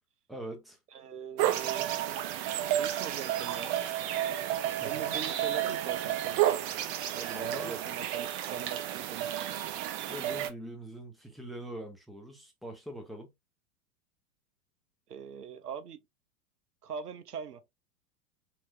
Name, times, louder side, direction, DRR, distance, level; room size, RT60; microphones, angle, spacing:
voice 1, 0.3-0.8 4.8-5.2 7.3-7.8 10.1-13.3, right 1 dB, ahead, 0.8 m, -43 dB
voice 2, 0.9-1.9 2.6-3.8 4.6-6.4 7.1-9.3 15.1-16.0 16.8-17.6, right 7 dB, 80° right, 0.7 m, -41 dB
sound 1, 1.4-10.5, right 12 dB, 30° right, 0.5 m, -31 dB
4.4 x 2.8 x 2.7 m
figure-of-eight pair, 95°, 46 cm